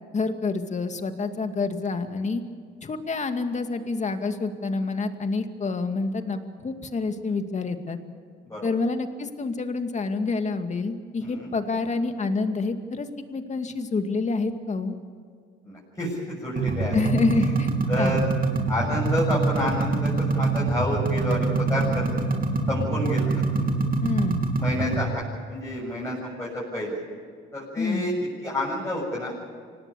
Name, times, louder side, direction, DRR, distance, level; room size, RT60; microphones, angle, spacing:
voice 1, 0.1-2.4 2.8-8.0 8.6-14.9 16.9-17.7 18.0-18.2 24.0-24.4 27.8-28.1, left 3 dB, 35° left, 7 dB, 2.3 m, -27 dB
voice 2, 11.2-11.5 15.6-17.5 17.9-18.3 18.7-22.2 22.7-23.7 24.6-25.2 25.5-27.0 27.5-29.4, left 1 dB, 15° left, -5 dB, 7.5 m, -29 dB
sound 1, 16.6-25.1, right 3 dB, 45° right, 3.0 m, -25 dB
25.5 x 18.5 x 7.1 m, 2.1 s
cardioid pair, 90°, 20 cm